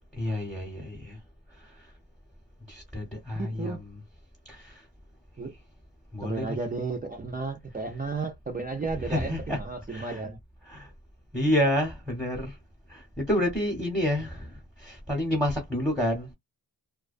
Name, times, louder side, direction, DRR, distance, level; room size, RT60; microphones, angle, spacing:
voice 1, 0.1-1.2 1.6-1.9 2.7-4.0 4.5-4.8 6.1-6.6 8.9-10.2 10.6-10.9 11.3-12.6 12.9-16.3, left 1 dB, ahead, 0.9 m, -29 dB
voice 2, 3.4-3.8 5.4-5.5 6.2-10.4, right 3 dB, 20° right, 0.4 m, -33 dB
2.3 x 2.2 x 2.5 m
wide cardioid pair, 80°, 41 cm